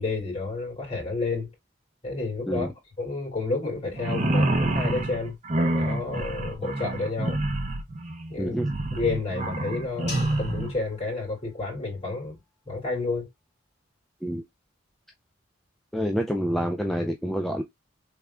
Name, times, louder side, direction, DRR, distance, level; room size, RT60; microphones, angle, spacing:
voice 1, 0.0-1.5 2.0-2.7 3.0-7.4 8.3-8.6 8.9-12.4 12.6-13.3, left 3 dB, 30° left, 2.7 m, -30 dB
sound 1, 3.9-10.8, right 2 dB, 35° right, 0.6 m, -27 dB
voice 2, 8.4-8.7 14.2-14.4 15.9-17.6, equal, ahead, 0.3 m, -27 dB
sound 2, 10.1-12.5, left 4 dB, 55° left, 2.2 m, -44 dB
3.6 x 3.2 x 2.3 m
head